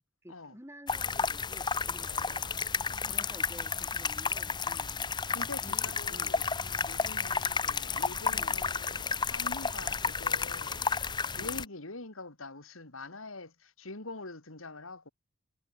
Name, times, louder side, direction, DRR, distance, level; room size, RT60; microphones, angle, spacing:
voice 1, 0.0-2.5 3.1-5.0 5.6-6.3 8.3-8.6 11.3-11.6, equal, 10° right, 3.2 m, -52 dB
sound 1, 0.9-11.6, left 5 dB, 20° left, 0.8 m, -32 dB
voice 2, 2.0-3.3 5.3-11.0 11.4-15.1, left 2 dB, 75° left, 2.8 m, -45 dB
head